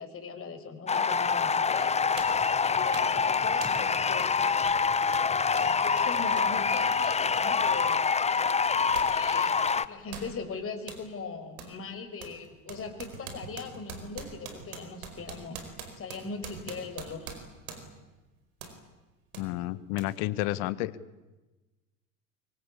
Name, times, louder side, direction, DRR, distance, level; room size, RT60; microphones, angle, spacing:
voice 1, 0.0-2.1 2.4-4.4 5.3-8.0 9.0-9.6 9.9-15.6 15.9-17.3, left 5 dB, 30° left, 5 dB, 5.5 m, -40 dB
sound 1, 0.9-9.9, left 5 dB, 15° left, 0.9 m, -26 dB
sound 2, 1.4-1.5 2.2-2.5 2.9-3.2 3.6-3.9 4.2-4.4 4.6-9.2 9.4-11.1 11.6-11.8 12.2-18.0 18.6-18.8 19.3-19.5 20.0-20.1, right 6 dB, 70° right, 4.9 m, -44 dB
voice 2, 19.3-20.9, left 16 dB, 55° left, 17 dB, 1.5 m, -31 dB
24.0 x 24.0 x 8.5 m, 1.1 s
figure-of-eight pair, 70°, 44 cm